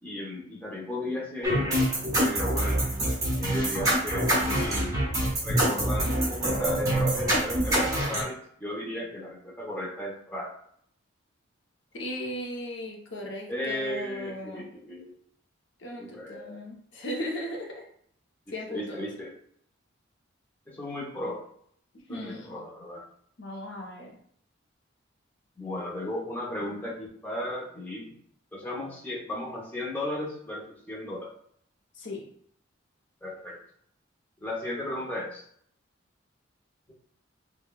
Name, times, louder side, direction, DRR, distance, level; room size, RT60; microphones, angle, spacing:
voice 1, 0.0-1.7 2.2-2.8 3.4-5.0 5.4-10.5 13.5-15.1 16.0-16.6 18.7-19.3 20.7-21.4 22.1-23.0 25.6-28.1 28.5-31.3 33.2-33.6 34.4-35.4, left 1 dB, 10° left, -4 dB, 0.7 m, -35 dB
sound 1, 1.4-8.2, right 1 dB, 15° right, 1.0 m, -25 dB
voice 2, 11.9-14.7 15.8-17.9 18.5-19.1 22.1-22.6 23.4-24.2 31.9-32.3, left 1 dB, 60° left, 0 dB, 0.7 m, -37 dB
5.7 x 2.2 x 2.3 m, 0.64 s
head